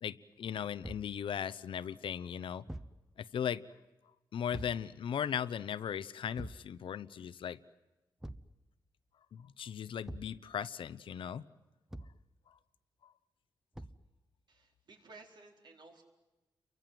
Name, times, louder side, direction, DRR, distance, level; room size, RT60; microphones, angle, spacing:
voice 1, 0.0-2.6 3.2-3.6 4.3-7.6 9.3-11.4 12.5-12.6 13.0-13.1, left 8 dB, 85° left, 16 dB, 0.8 m, -38 dB
Thump thud, 0.8-1.2 2.7-3.0 4.5-4.9 6.4-6.7 8.2-8.5 10.0-10.4 11.9-12.2 13.7-14.1, right 1 dB, 5° right, 0.9 m, -45 dB
voice 2, 14.5-16.0, right 3 dB, 60° right, 2 dB, 4.4 m, -56 dB
30.0 x 23.5 x 7.8 m, 1.1 s
wide cardioid pair, 140°, 9 cm